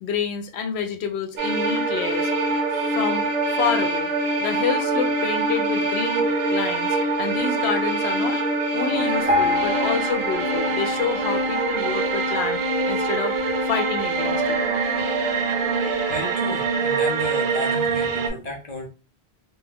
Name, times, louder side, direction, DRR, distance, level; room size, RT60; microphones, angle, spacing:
voice 1, 0.0-2.3 2.9-3.2 3.6-4.1 4.4-8.4 8.7-12.6 12.9-13.3 13.6-14.6, left 6 dB, 90° left, 6 dB, 0.8 m, -28 dB
sound 1, 1.4-18.3, right 3 dB, 80° right, 0.8 m, -24 dB
Piano, 9.3-12.4 12.9-13.1 13.4-13.5 14.2-14.3 14.8-14.9, left 3 dB, 15° right, 0.3 m, -28 dB
voice 2, 16.1-18.9, left 1 dB, 45° left, 2 dB, 0.6 m, -32 dB
2.2 x 2.2 x 3.2 m, 0.32 s
omnidirectional pair, 1.1 m